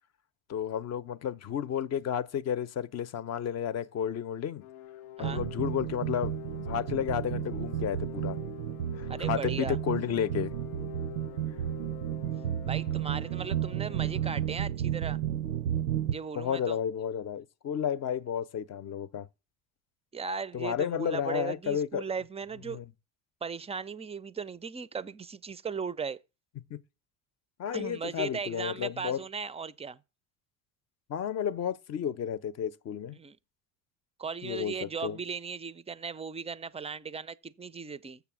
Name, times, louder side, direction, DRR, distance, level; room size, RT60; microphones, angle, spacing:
voice 1, 0.5-4.6 5.2-8.4 9.0-10.5 16.4-19.3 20.5-22.0 22.7-22.8 26.7-26.8 27.6-29.2 31.1-33.2 34.4-35.2, left 8 dB, 40° left, 0.7 m, -32 dB
sound 1, 4.6-14.5, left 12 dB, 85° left, 0.7 m, -46 dB
sound 2, 5.2-16.1, right 11 dB, 90° right, 0.5 m, -32 dB
voice 2, 9.1-9.8 12.6-15.2 16.1-16.8 20.1-22.8 23.4-26.2 27.7-30.0 33.1-33.4 34.2-38.2, right 5 dB, 15° right, 0.4 m, -37 dB
7.0 x 6.8 x 6.1 m
hypercardioid pair, 75°, 42 cm